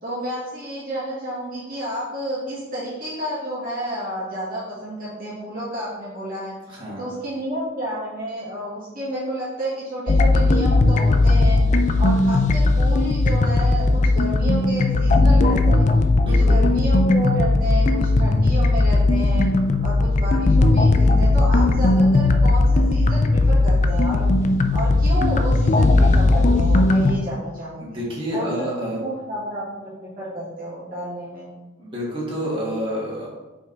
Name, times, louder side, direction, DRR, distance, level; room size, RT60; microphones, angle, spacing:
voice 1, 0.0-6.5 7.0-15.9 16.2-19.5 19.8-24.3 24.7-28.0 28.3-31.5, right 1 dB, 45° right, -8 dB, 1.6 m, -30 dB
voice 2, 6.7-7.1 16.2-16.5 27.8-29.0 31.8-33.3, equal, 25° right, -6 dB, 1.8 m, -28 dB
sound 1, 10.1-27.2, left 2 dB, 35° left, 0.4 m, -17 dB
5.1 x 4.8 x 3.9 m, 1.2 s
head